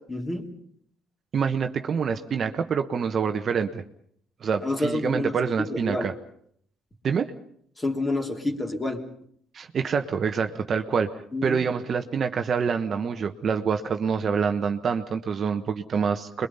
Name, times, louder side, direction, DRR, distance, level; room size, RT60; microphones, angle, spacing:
voice 1, 0.1-0.5 4.6-5.3 5.6-6.1 7.8-9.0 11.3-11.6, left 2 dB, 15° left, 3 dB, 3.2 m, -28 dB
voice 2, 1.3-3.8 4.4-6.1 7.0-7.3 9.5-11.1 11.4-16.5, right 6 dB, 40° right, 7 dB, 1.2 m, -26 dB
26.5 x 22.5 x 5.6 m, 0.64 s
cardioid pair, 120°, 0 cm